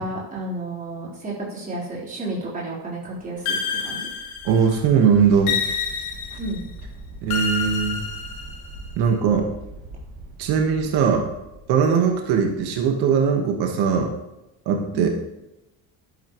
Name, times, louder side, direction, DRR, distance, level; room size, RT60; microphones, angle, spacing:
voice 1, 0.0-4.0 6.4-6.6 14.9-15.1, right 2 dB, 20° right, -6 dB, 3.9 m, -31 dB
sound 1, 3.2-13.1, right 2 dB, 65° right, 2.0 m, -42 dB
sound 2, 3.5-4.8 5.5-6.6 7.3-8.8, left 6 dB, 75° left, 2.0 m, -28 dB
voice 2, 4.4-5.7 7.2-8.0 8.9-9.5 10.4-11.3 11.7-14.1 14.6-15.1, right 6 dB, 85° right, 2 dB, 1.5 m, -20 dB
12.5 x 10.5 x 3.1 m, 0.94 s
cardioid pair, 165°, 38 cm